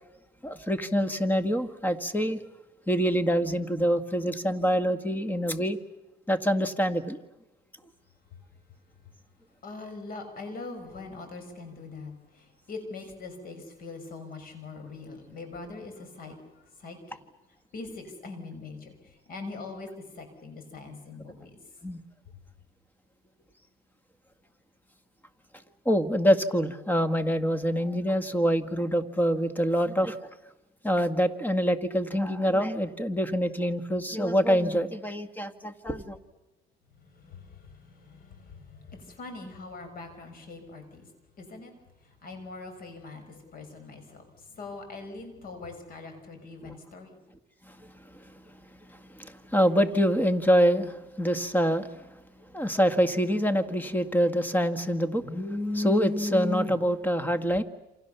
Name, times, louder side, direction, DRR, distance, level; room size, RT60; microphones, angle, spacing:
voice 1, 0.4-2.4 2.9-5.8 6.3-7.2 21.8-22.0 25.9-30.2 30.8-36.2 46.6-46.7 47.7-48.3 48.9-51.9 52.5-57.6, equal, 10° left, 11 dB, 1.8 m, -25 dB
voice 2, 9.6-16.4 16.8-17.0 17.7-19.9 20.1-21.6 37.0-41.1 41.4-41.7 42.2-47.1, left 3 dB, 60° left, 7 dB, 6.4 m, -42 dB
28.5 x 26.5 x 7.1 m, 1.0 s
cardioid pair, 110°, 17 cm